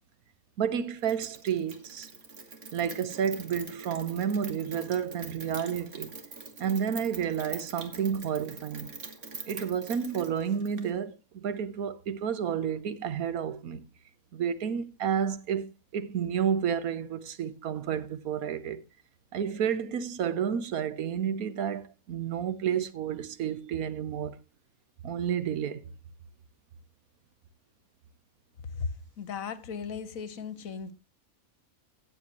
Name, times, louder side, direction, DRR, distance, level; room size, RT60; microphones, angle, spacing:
voice 1, 0.6-2.1 2.7-6.1 6.6-8.9 9.5-13.8 14.3-18.8 19.3-24.4 25.0-25.8, right 8 dB, 85° right, 1.4 m, -31 dB
Rain, 1.0-10.9, right 4 dB, 55° right, 2.0 m, -44 dB
voice 2, 28.7-30.9, left 5 dB, 70° left, 1.4 m, -36 dB
17.0 x 8.0 x 3.0 m
omnidirectional pair, 1.5 m